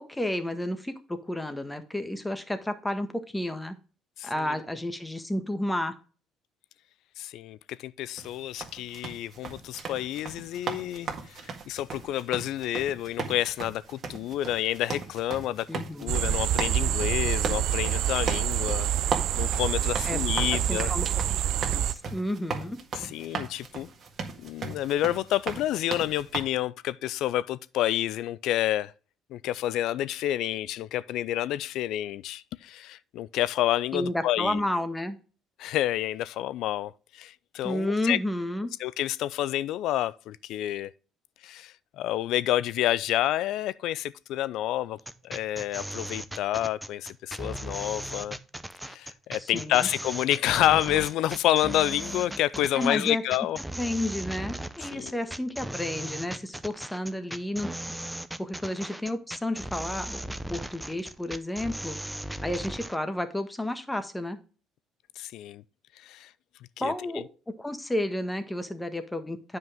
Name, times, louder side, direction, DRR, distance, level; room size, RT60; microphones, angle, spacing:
voice 1, 0.0-3.7 4.2-6.0 15.7-16.1 20.0-20.2 20.7-21.2 21.7-22.8 33.9-35.2 37.6-38.7 49.4-49.9 52.7-53.2 53.8-57.7 58.4-62.0 62.4-64.4 66.8-69.6, left 1 dB, 10° left, 1.4 m, -31 dB
voice 2, 4.2-4.6 7.2-18.9 19.4-20.9 22.9-23.9 24.4-28.9 29.3-34.6 35.6-38.2 38.8-40.9 41.4-45.0 45.2-48.4 48.9-53.6 54.9-55.1 65.2-65.6 66.0-66.3 66.8-67.1, left 13 dB, 65° left, 0.4 m, -29 dB
sound 1, 8.2-26.4, right 5 dB, 45° right, 1.7 m, -37 dB
sound 2, 16.1-21.9, right 11 dB, 65° right, 0.4 m, -27 dB
sound 3, 45.0-63.0, right 1 dB, 5° right, 0.7 m, -37 dB
9.5 x 5.3 x 3.7 m
hypercardioid pair, 55°, 0 cm